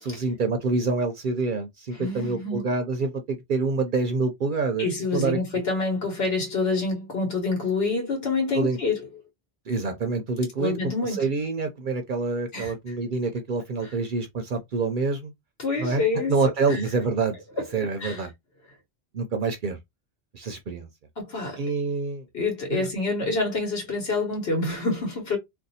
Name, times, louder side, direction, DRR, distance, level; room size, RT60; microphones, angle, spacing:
voice 1, 0.0-4.9 5.1-5.4 8.5-8.8 9.7-10.7 11.0-15.3 15.8-17.4 17.7-18.3 19.1-19.8 20.3-20.9 21.6-22.2 22.7-22.9, right 4 dB, 60° right, 0.7 m, -26 dB
voice 2, 1.9-2.7 4.8-9.0 10.6-11.3 12.5-12.7 15.6-16.4 16.7-16.8 17.6-17.7 18.0-18.2 21.2-21.6 22.3-25.4, left 3 dB, 75° left, 1.2 m, -27 dB
2.5 x 2.3 x 4.0 m
omnidirectional pair, 1.0 m